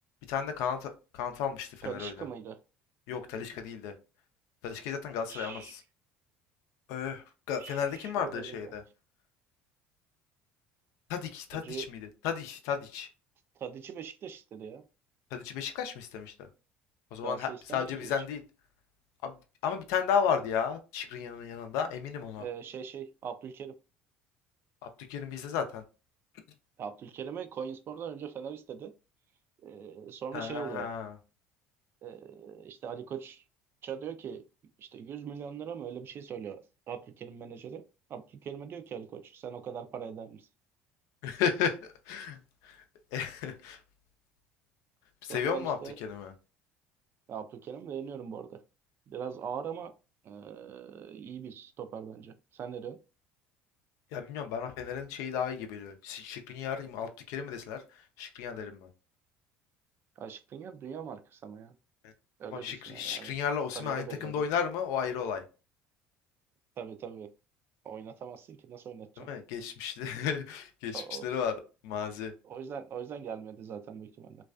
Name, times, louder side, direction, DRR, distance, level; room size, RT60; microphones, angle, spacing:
voice 1, 0.3-2.1 3.1-3.9 4.6-5.8 6.9-8.8 11.1-12.0 12.2-13.1 15.3-16.5 17.1-18.4 19.2-19.3 19.6-22.4 25.1-25.8 30.3-31.1 41.2-42.8 43.1-43.8 45.2-46.3 54.1-57.8 58.2-58.9 62.0-62.1 62.5-65.4 69.3-72.3, left 7 dB, 70° left, 0.4 m, -34 dB
voice 2, 1.8-2.6 5.3-5.8 7.6-8.7 11.5-11.9 13.6-14.8 17.2-18.1 22.4-23.8 26.8-28.9 29.6-30.9 32.0-33.4 33.8-34.4 34.8-37.8 38.1-40.5 45.2-45.9 47.3-48.6 49.1-49.9 50.2-53.0 60.2-61.7 62.4-63.3 63.7-64.4 66.8-67.3 67.8-69.3 70.9-71.3 72.4-74.4, right 7 dB, 45° right, 0.4 m, -41 dB
2.3 x 2.3 x 2.3 m
hypercardioid pair, 75°, 5 cm